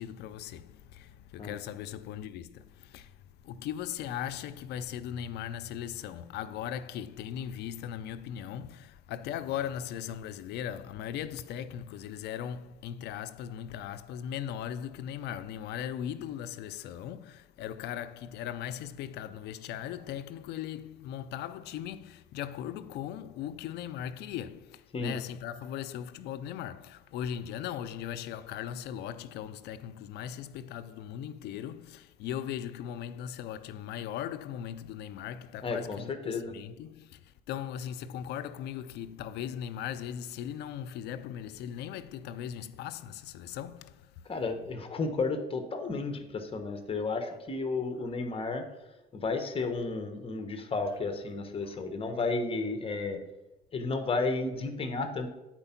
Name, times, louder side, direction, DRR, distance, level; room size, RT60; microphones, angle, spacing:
voice 1, 0.0-44.2 51.6-51.7, left 10 dB, 80° left, 0.5 m, -38 dB
voice 2, 35.6-36.5 44.2-48.7 49.1-53.2 53.7-55.3, left 3 dB, 35° left, 1.1 m, -32 dB
8.8 x 4.5 x 5.7 m
cardioid pair, 110°, 17 cm